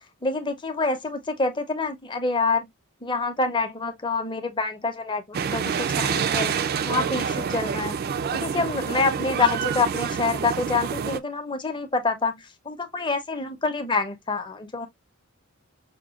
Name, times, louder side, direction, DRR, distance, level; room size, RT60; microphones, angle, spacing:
voice 1, 0.2-2.7 3.0-8.0 8.3-14.9, left 4 dB, 25° left, 0.7 m, -27 dB
sound 1, 5.3-11.2, right 7 dB, 45° right, 0.3 m, -27 dB
5.9 x 2.2 x 2.4 m
head